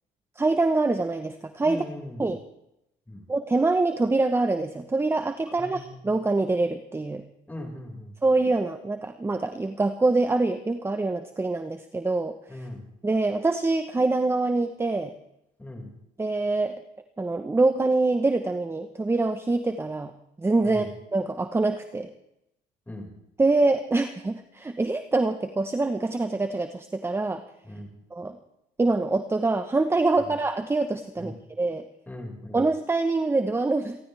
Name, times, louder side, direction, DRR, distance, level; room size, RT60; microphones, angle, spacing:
voice 1, 0.4-1.8 2.2-2.4 3.3-7.2 8.2-12.6 13.0-15.1 16.2-16.8 17.2-20.1 20.4-20.8 21.1-22.1 23.4-27.4 28.1-28.4 28.8-31.8 32.5-34.0, right 3 dB, 15° right, 8 dB, 1.1 m, -25 dB
voice 2, 1.6-2.3 3.1-3.2 5.6-6.0 7.5-8.1 12.5-12.8 15.6-15.9 20.6-20.9 22.9-23.1 27.6-27.9 31.2-31.3 32.1-32.6, left 1 dB, 10° left, 1 dB, 5.5 m, -39 dB
29.0 x 13.0 x 3.5 m, 0.82 s
cardioid pair, 110°, 17 cm